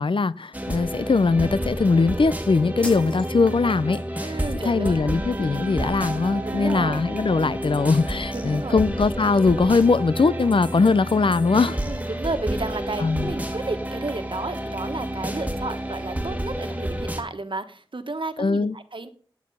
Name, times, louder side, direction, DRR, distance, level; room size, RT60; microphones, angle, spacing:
voice 1, 0.0-4.4 4.6-11.8 13.0-13.3 18.4-18.8, left 4 dB, 75° left, 0.5 m, -21 dB
sound 1, 0.5-17.2, right 1 dB, 15° right, 1.9 m, -30 dB
sound 2, 2.8-3.8, equal, 15° left, 6.7 m, -38 dB
voice 2, 4.2-5.2 6.5-7.1 8.3-8.8 11.7-19.1, right 3 dB, 70° right, 1.3 m, -32 dB
10.5 x 8.3 x 5.4 m
wide cardioid pair, 40°, 9 cm